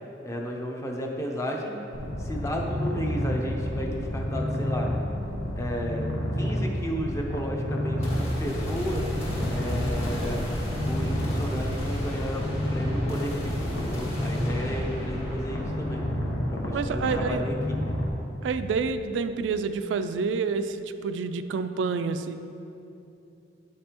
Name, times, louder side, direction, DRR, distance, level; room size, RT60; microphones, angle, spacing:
voice 1, 0.2-1.8 2.2-4.9 5.6-6.1 6.4-9.1 9.5-10.4 10.8-16.0 16.5-17.8, equal, 15° left, 0 dB, 0.6 m, -33 dB
Purr, 1.9-18.1, left 1 dB, 85° left, 0.9 m, -30 dB
sound 1, 8.0-19.4, equal, 35° left, 1.5 m, -35 dB
voice 2, 16.7-17.4 18.4-22.4, right 5 dB, 90° right, 10 dB, 0.3 m, -28 dB
8.7 x 5.3 x 2.9 m, 2.9 s
head